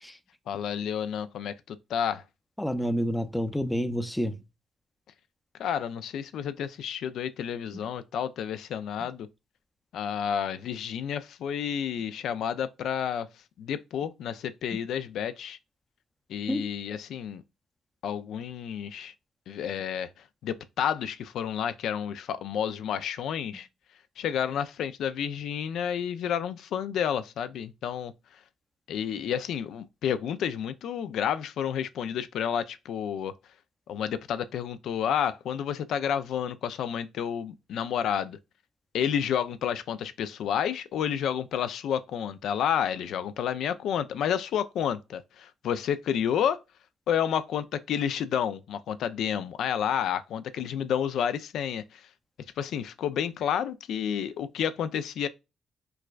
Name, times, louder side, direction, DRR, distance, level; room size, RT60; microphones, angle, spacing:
voice 1, 0.5-2.2 5.6-9.3 9.9-13.3 13.6-15.6 16.3-17.4 18.0-19.1 19.5-20.1 20.4-23.7 24.2-28.1 28.9-33.3 33.9-38.4 38.9-46.6 47.1-52.1 52.6-55.3, left 8 dB, 75° left, 0.3 m, -30 dB
voice 2, 2.6-4.4 14.7-14.8 16.5-16.6, equal, 5° left, 0.5 m, -28 dB
4.6 x 2.2 x 2.3 m
cardioid pair, 90°, 0 cm